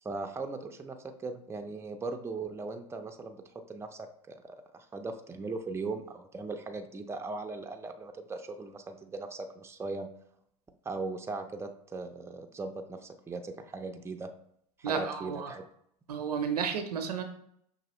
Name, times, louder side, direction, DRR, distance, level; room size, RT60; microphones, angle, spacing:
voice 1, 0.0-10.1 10.8-14.3 14.8-15.6, right 3 dB, 15° right, 6 dB, 0.5 m, -39 dB
voice 2, 14.8-15.5 16.1-17.2, right 6 dB, 85° right, 6 dB, 0.7 m, -32 dB
5.9 x 2.7 x 3.0 m, 0.70 s
hypercardioid pair, 85°, 19 cm